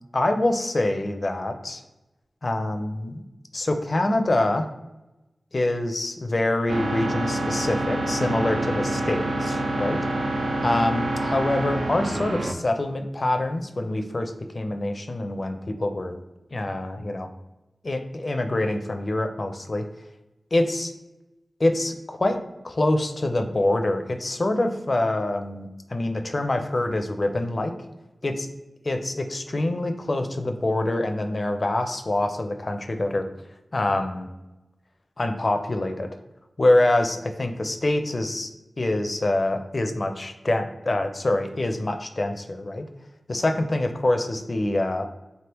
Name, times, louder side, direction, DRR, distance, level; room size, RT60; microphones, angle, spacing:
voice 1, 0.1-1.8 2.4-3.2 3.5-4.7 5.5-10.0 10.6-16.1 16.5-17.3 17.8-19.9 20.5-20.9 21.6-27.8 28.2-28.5 28.8-33.3 33.7-34.3 35.2-36.1 36.6-38.5 38.8-42.8 43.3-45.1, left 1 dB, 45° left, 7 dB, 0.4 m, -25 dB
sound 1, 6.7-12.5, right 1 dB, 80° right, 0.4 m, -27 dB
3.9 x 3.4 x 2.9 m, 0.99 s
wide cardioid pair, 80°, 0 cm